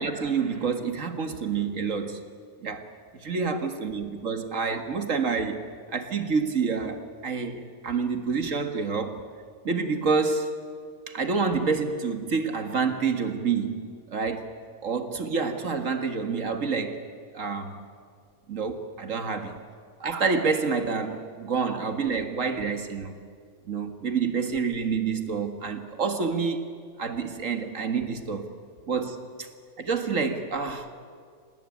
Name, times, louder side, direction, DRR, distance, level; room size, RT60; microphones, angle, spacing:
voice 1, 0.0-2.2 2.6-2.9 3.2-9.2 9.6-10.5 11.1-14.5 14.8-17.0 17.3-17.8 18.5-19.6 20.0-23.2 23.7-26.7 27.0-28.5 28.9-29.5 29.8-30.9, right 5 dB, 50° right, 7 dB, 2.1 m, -28 dB
26.0 x 19.0 x 9.6 m, 2.1 s
omnidirectional pair, 1.7 m